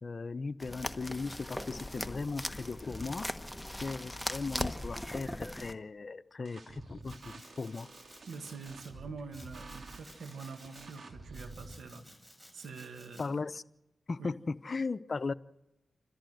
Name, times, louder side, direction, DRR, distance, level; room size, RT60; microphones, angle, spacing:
voice 1, 0.0-3.3 3.8-7.9 13.2-13.6 14.1-15.3, left 4 dB, 55° left, 15 dB, 0.7 m, -37 dB
sound 1, 0.6-5.7, left 1 dB, 5° left, 1.3 m, -39 dB
sound 2, 6.5-11.8, right 3 dB, 65° right, 2.7 m, -50 dB
Domestic sounds home sounds, 7.0-8.9 9.3-11.0 11.3-13.3, equal, 10° right, 7.8 m, -57 dB
voice 2, 8.3-12.1 12.5-13.4 14.2-14.3, right 4 dB, 85° right, 7 dB, 1.9 m, -45 dB
29.0 x 14.0 x 7.7 m, 0.97 s
cardioid pair, 45°, 0 cm